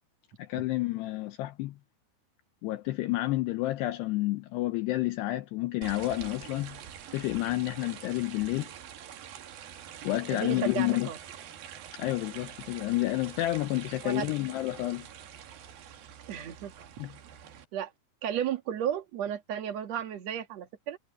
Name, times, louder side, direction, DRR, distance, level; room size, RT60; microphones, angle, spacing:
voice 1, 0.4-1.8 2.6-6.8 7.1-8.7 10.0-11.1 12.0-15.1 17.0-17.1, left 17 dB, 80° left, 2.5 m, -30 dB
sound 1, 5.8-17.6, right 9 dB, 60° right, 3.1 m, -46 dB
voice 2, 10.3-11.2 14.0-14.3 16.3-16.7 17.7-17.9 18.2-21.0, right 9 dB, 75° right, 1.5 m, -33 dB
omnidirectional pair, 5.5 m